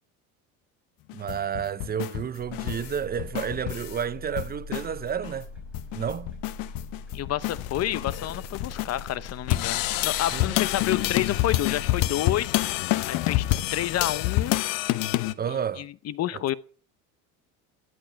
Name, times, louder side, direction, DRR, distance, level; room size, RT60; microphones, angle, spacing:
sound 1, 1.1-4.0 4.4-4.9 5.2-5.3 5.6-8.8 9.5-15.3, left 16 dB, 70° left, 1.0 m, -28 dB
voice 1, 1.1-5.5 5.9-6.3 10.3-10.5 15.4-15.9 16.3-16.4, right 8 dB, 25° right, 0.6 m, -31 dB
sound 2, 2.4-12.0, left 2 dB, 5° right, 5.4 m, -43 dB
voice 2, 7.1-12.5 13.1-13.4 13.7-14.6 15.5-16.5, left 12 dB, 45° left, 0.8 m, -29 dB
sound 3, 7.4-14.6, left 18 dB, 90° left, 0.8 m, -39 dB
14.0 x 11.5 x 4.6 m
cardioid pair, 120°, 35 cm